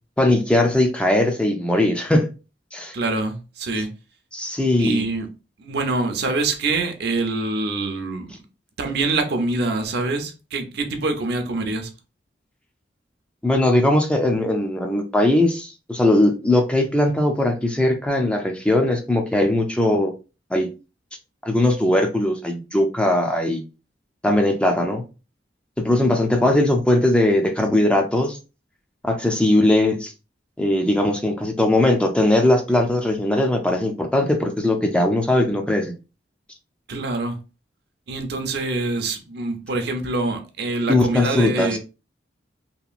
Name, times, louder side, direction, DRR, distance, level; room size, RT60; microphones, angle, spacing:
voice 1, 0.2-2.3 2.7-2.9 4.3-5.0 13.4-20.1 20.5-20.7 21.4-23.6 24.2-25.0 25.8-28.4 29.0-30.1 30.6-35.9 40.9-41.8, left 1 dB, 5° left, 0.4 m, -19 dB
voice 2, 2.9-3.9 4.8-5.3 5.6-8.3 8.8-11.9 36.9-37.4 38.1-41.8, right 3 dB, 65° right, 0.6 m, -25 dB
2.9 x 2.4 x 2.3 m
head